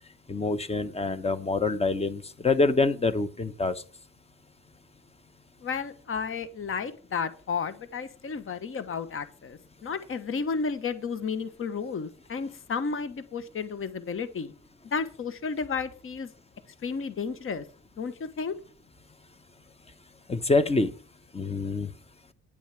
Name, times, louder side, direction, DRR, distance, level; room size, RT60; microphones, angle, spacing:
voice 1, 0.3-3.8 20.3-20.9 21.3-21.9, left 3 dB, 20° left, 13 dB, 1.1 m, -26 dB
voice 2, 5.6-14.5 14.8-16.3 16.8-17.6 18.0-18.6, left 5 dB, 45° left, 13 dB, 1.2 m, -32 dB
10.0 x 7.2 x 5.9 m, 0.38 s
cardioid pair, 90°, 30 cm